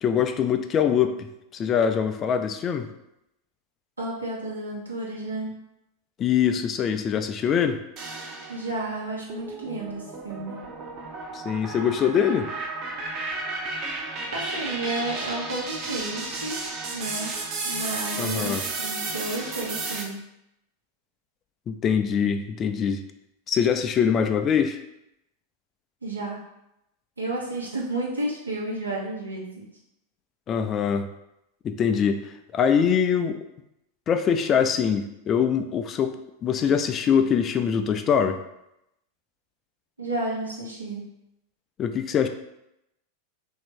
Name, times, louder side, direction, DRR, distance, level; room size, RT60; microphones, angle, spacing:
voice 1, 0.0-1.3 1.5-2.9 6.2-7.8 11.3-12.5 18.2-18.7 21.7-23.0 23.5-24.8 30.5-31.1 31.6-32.2 32.5-33.4 34.1-38.4 41.8-42.3, left 7 dB, 30° left, 8 dB, 0.4 m, -23 dB
voice 2, 4.0-5.5 8.5-10.6 14.3-16.6 16.9-17.3 17.6-20.2 26.0-26.4 27.2-29.5 40.0-41.0, right 2 dB, 90° right, -4 dB, 1.1 m, -31 dB
sound 1, 8.0-8.8 9.3-20.0, right 3 dB, 40° right, 0.8 m, -33 dB
3.2 x 2.7 x 4.5 m, 0.85 s
figure-of-eight pair, 90°, 0 cm